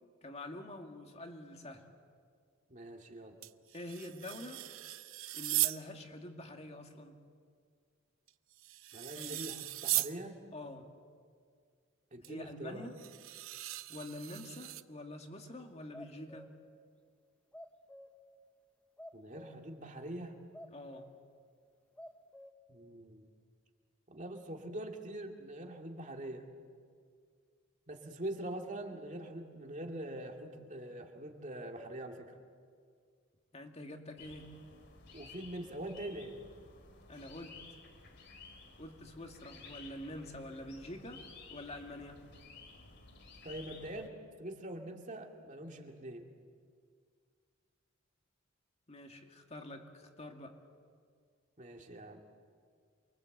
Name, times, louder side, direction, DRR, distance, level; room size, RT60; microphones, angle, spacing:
voice 1, 0.2-1.8 3.7-4.6 5.3-7.2 9.2-9.4 10.5-10.9 12.3-12.9 13.9-16.5 20.7-21.1 33.5-34.5 37.1-37.6 38.8-41.2 41.5-42.2 48.9-50.6, left 1 dB, 30° left, 4 dB, 2.1 m, -46 dB
voice 2, 2.7-3.4 8.9-10.4 12.1-12.9 19.1-20.4 22.7-23.3 24.1-26.5 27.9-32.3 35.1-36.4 43.4-44.1 44.4-46.3 51.6-52.3, right 1 dB, 35° right, 2 dB, 2.4 m, -44 dB
sound 1, 3.4-5.8 8.3-10.2 12.2-12.3 13.0-14.8, right 16 dB, 75° right, 0.7 m, -37 dB
sound 2, 15.9-16.6 17.5-18.2 19.0-19.7 20.2-20.3 20.5-21.2 21.7-22.5, left 1 dB, 5° left, 0.9 m, -52 dB
sound 3, 34.2-44.1, left 4 dB, 55° left, 2.5 m, -54 dB
28.0 x 23.5 x 8.0 m, 2.1 s
head